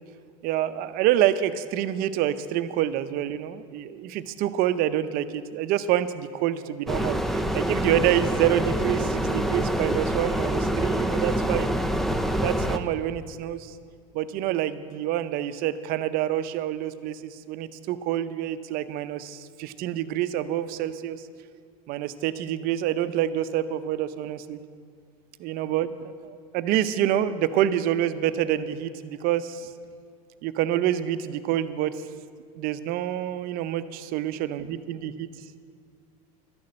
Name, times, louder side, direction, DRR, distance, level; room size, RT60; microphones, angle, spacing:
voice 1, 0.4-11.7 12.4-13.8 14.1-21.2 21.9-24.6 25.4-29.7 30.4-32.0 32.6-35.3, right 11 dB, 50° right, 12 dB, 0.7 m, -27 dB
sound 1, 6.9-12.8, right 1 dB, ahead, 0.5 m, -26 dB
12.5 x 6.6 x 9.6 m, 2.1 s
supercardioid pair, 125°, 19 cm